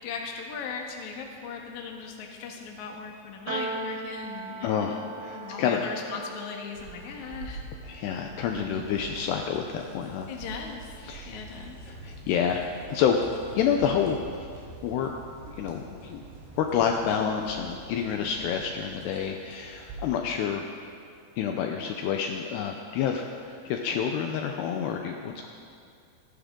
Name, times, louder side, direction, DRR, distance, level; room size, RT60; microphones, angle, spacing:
voice 1, 0.0-7.6 10.3-10.9 11.2-11.9, left 5 dB, 60° left, 1 dB, 2.2 m, -38 dB
Piano, 3.5-10.0, right 4 dB, 65° right, 2.0 m, -41 dB
voice 2, 4.6-5.8 7.8-10.3 11.0-11.4 11.9-13.2 13.5-14.5 14.8-15.1 15.5-16.2 16.6-20.6 21.4-25.5, left 7 dB, 80° left, 3 dB, 2.6 m, -28 dB
sound 1, 6.7-20.0, right 2 dB, 90° right, 5.3 m, -45 dB
29.5 x 10.5 x 3.8 m, 2.4 s
omnidirectional pair, 5.2 m